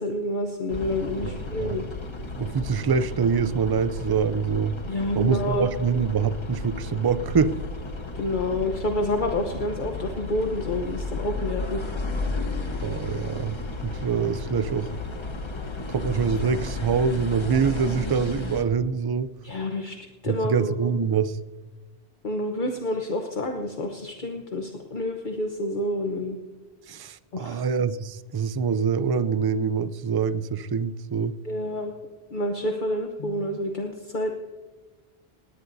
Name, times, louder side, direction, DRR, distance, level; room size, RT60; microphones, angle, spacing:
voice 1, 0.0-1.9 4.9-5.7 8.1-11.9 19.4-20.9 22.2-26.4 27.3-27.6 31.4-31.9 32.3-34.3, left 1 dB, 50° left, 1.1 m, -28 dB
sound 1, 0.7-18.6, left 3 dB, 30° left, 1.0 m, -33 dB
voice 2, 2.4-4.8 5.1-7.5 12.8-14.9 15.9-19.3 20.3-21.4 26.9-31.4, right 6 dB, 40° right, 0.3 m, -25 dB
19.5 x 18.0 x 2.7 m
omnidirectional pair, 1.0 m